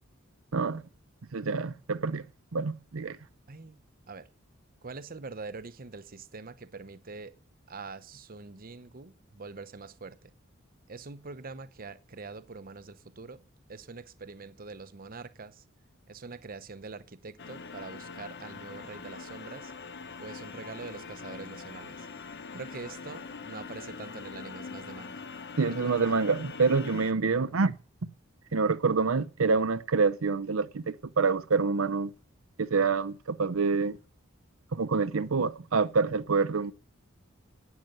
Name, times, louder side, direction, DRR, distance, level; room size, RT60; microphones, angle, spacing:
voice 1, 0.5-0.8 1.3-2.2 2.5-3.2 25.6-27.7 28.5-32.1 32.6-34.0 34.7-36.7, right 4 dB, 85° right, 0.7 m, -27 dB
voice 2, 3.5-3.8 4.1-4.3 4.8-7.3 7.7-10.3 10.9-13.4 13.7-15.6 16.1-19.7 20.2-22.1 22.5-25.2 25.6-26.1, right 4 dB, 45° right, 0.8 m, -44 dB
sound 1, 17.4-27.1, left 4 dB, 55° left, 0.9 m, -43 dB
12.0 x 9.2 x 9.1 m
head